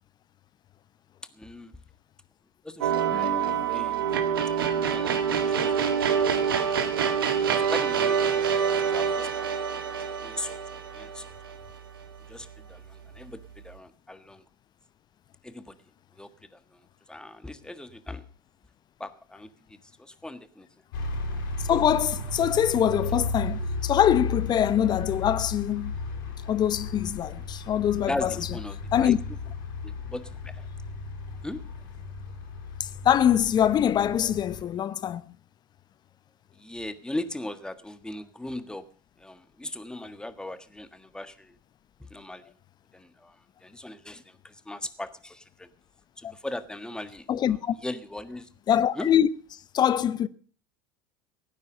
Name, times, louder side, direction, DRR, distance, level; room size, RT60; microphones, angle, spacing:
voice 1, 1.3-1.7 2.6-4.0 4.8-6.4 7.5-9.5 10.2-10.6 10.9-11.3 12.3-14.4 15.4-15.8 16.1-16.8 17.1-18.2 19.0-20.7 28.0-29.1 29.8-30.7 31.4-31.6 36.6-38.9 39.2-41.5 42.0-42.4 42.9-43.4 43.6-45.7 46.2-48.5 48.9-49.1, left 1 dB, 5° left, 1.5 m, -39 dB
sound 1, 2.8-12.0, right 7 dB, 80° right, 1.9 m, -26 dB
voice 2, 3.1-3.6 21.7-25.9 26.5-28.3 28.9-29.2 32.8-35.3 46.2-46.3 47.3-47.8 48.7-49.3 49.7-50.3, left 10 dB, 35° left, 0.8 m, -24 dB
sound 2, 20.9-34.6, left 3 dB, 70° left, 5.2 m, -34 dB
17.0 x 9.6 x 6.6 m
hypercardioid pair, 75°, 12 cm